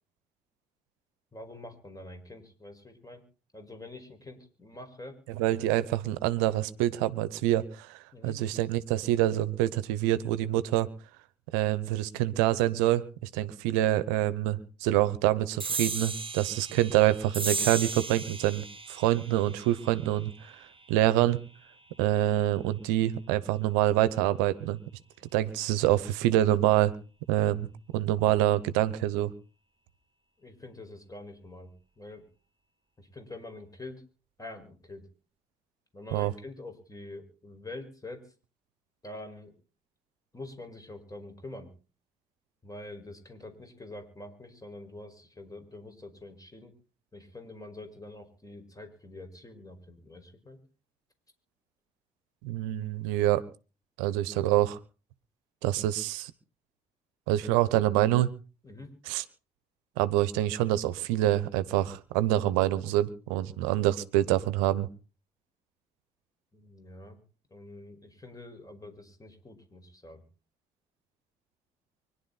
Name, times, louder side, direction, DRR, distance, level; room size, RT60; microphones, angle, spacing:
voice 1, 1.3-3.2 3.5-5.2 8.1-8.4 30.4-32.2 33.0-34.0 34.4-35.0 35.9-38.2 39.0-39.5 40.3-41.7 42.6-46.7 47.1-50.6 58.6-58.9 66.5-67.2 67.5-70.2, left 2 dB, 15° left, 6 dB, 5.1 m, -45 dB
voice 2, 5.3-10.9 11.5-20.5 20.9-21.4 22.0-24.8 25.3-26.9 27.3-27.7 27.9-29.3 36.1-36.3 52.4-53.4 54.0-54.8 55.6-56.3 57.3-58.3 59.1-59.2 60.0-64.9, right 14 dB, 80° right, 17 dB, 0.9 m, -26 dB
sound 1, 15.6-22.4, right 4 dB, 25° right, 1.4 m, -37 dB
24.5 x 11.5 x 4.1 m, 0.35 s
hypercardioid pair, 45°, 20 cm